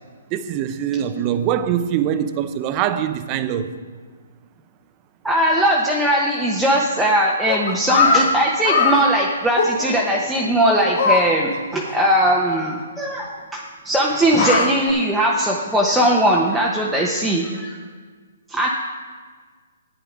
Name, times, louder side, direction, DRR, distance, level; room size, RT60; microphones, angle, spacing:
voice 1, 0.3-3.7, right 9 dB, 30° right, 11 dB, 0.7 m, -23 dB
voice 2, 5.2-17.8 18.5-18.7, right 1 dB, 5° right, -4 dB, 0.9 m, -19 dB
sound 1, 7.5-8.2 8.6-9.0 9.6-10.2 11.0-11.2 11.5-11.6 11.9-12.0 12.3-12.4 14.1-14.9, left 4 dB, 55° left, 1.6 m, -19 dB
9.8 x 9.3 x 5.1 m, 1.5 s
hypercardioid pair, 140°, 0 cm